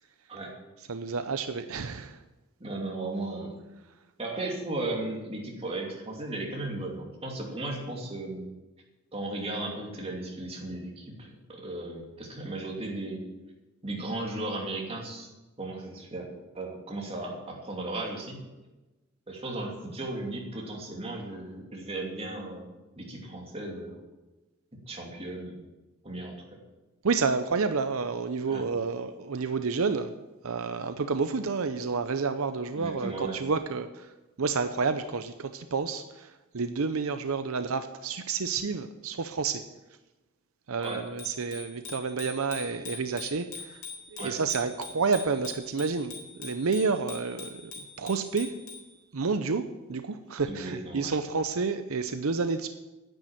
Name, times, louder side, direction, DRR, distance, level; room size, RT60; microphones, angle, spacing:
voice 1, 0.9-2.2 27.0-30.1 30.4-39.6 40.7-43.8 44.1-48.5 49.1-52.7, right 4 dB, 75° right, 9 dB, 0.7 m, -30 dB
voice 2, 2.6-3.5 4.2-8.5 9.1-13.2 13.8-15.3 15.6-16.3 16.5-18.4 19.3-23.9 24.9-25.6 26.0-26.4 28.5-28.6 32.8-33.3 40.8-41.0 44.2-44.4 50.5-51.1, right 2 dB, 30° right, -1 dB, 2.9 m, -36 dB
Bicycle bell, 40.8-48.9, left 5 dB, 80° left, 4.0 m, -44 dB
10.5 x 9.1 x 9.1 m, 1.1 s
head